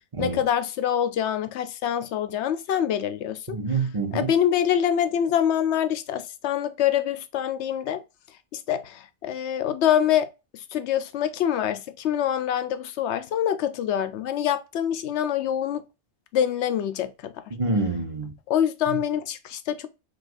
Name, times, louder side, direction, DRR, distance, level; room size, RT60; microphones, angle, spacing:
voice 1, 0.2-3.6 4.1-8.0 8.5-10.3 10.5-15.8 16.3-17.5 18.5-19.9, left 10 dB, 85° left, 0.9 m, -25 dB
voice 2, 3.5-4.3 17.5-18.3 18.9-19.0, right 3 dB, 35° right, 0.8 m, -27 dB
6.2 x 2.4 x 2.4 m
omnidirectional pair, 1.1 m